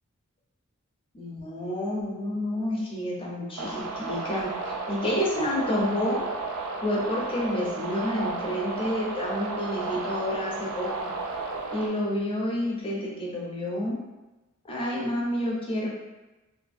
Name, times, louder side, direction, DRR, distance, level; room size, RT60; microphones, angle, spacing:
voice 1, 1.1-6.3 6.8-11.1 11.7-14.0 14.6-15.9, left 1 dB, 25° left, -3 dB, 0.5 m, -29 dB
sound 1, 3.6-11.9, right 3 dB, 90° right, 0.4 m, -33 dB
2.5 x 2.5 x 2.5 m, 1.1 s
head